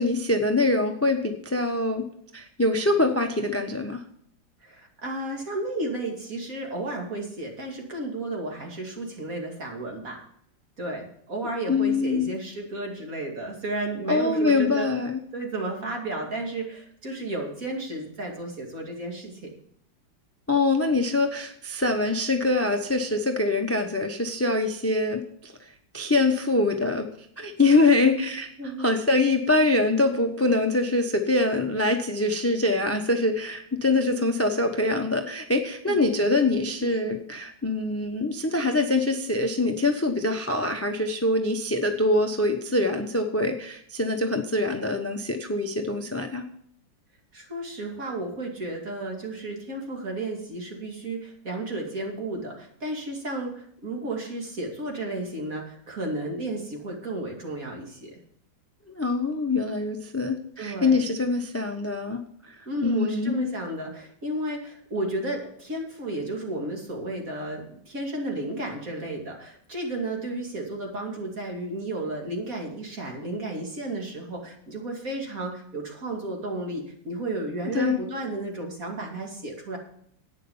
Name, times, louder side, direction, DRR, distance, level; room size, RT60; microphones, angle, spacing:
voice 1, 0.0-2.0 2.3-4.0 11.7-12.3 14.1-15.2 20.5-25.5 25.9-27.1 27.4-28.5 28.8-46.4 58.9-63.5 77.7-78.0, left 2 dB, 15° left, 5 dB, 0.5 m, -24 dB
voice 2, 4.6-10.2 10.8-14.9 15.3-19.4 28.6-28.9 35.9-36.0 36.8-37.2 37.8-37.9 47.3-58.2 60.6-61.0 62.7-79.8, right 2 dB, 40° right, 1 dB, 3.0 m, -33 dB
11.5 x 9.2 x 5.6 m, 0.66 s
omnidirectional pair, 2.2 m